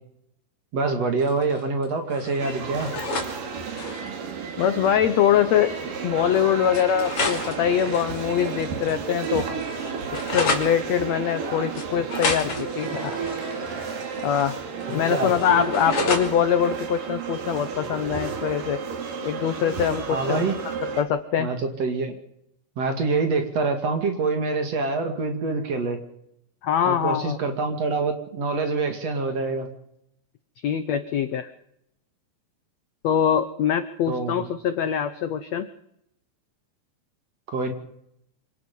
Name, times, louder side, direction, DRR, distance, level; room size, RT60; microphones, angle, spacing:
voice 1, 0.7-2.9 15.1-15.3 19.7-19.8 20.1-20.6 21.4-22.2 22.8-26.0 26.9-29.7 34.1-34.5 37.5-37.7, right 4 dB, 45° right, 6 dB, 3.1 m, -25 dB
sound 1, 1.2-3.3 3.6-4.1 5.2-5.3 5.6-5.7 6.7-8.9 9.2-10.7 11.7-14.5 14.8-16.3, left 2 dB, 40° left, 4.0 m, -31 dB
sound 2, 2.4-21.0, right 5 dB, 65° right, 4.1 m, -32 dB
voice 2, 4.6-5.7 6.0-9.5 10.1-13.2 14.2-14.6 14.9-18.8 19.2-21.5 26.6-27.4 30.6-31.5 33.0-35.7, left 9 dB, 75° left, 11 dB, 1.6 m, -23 dB
26.0 x 18.5 x 5.5 m, 0.76 s
omnidirectional pair, 4.2 m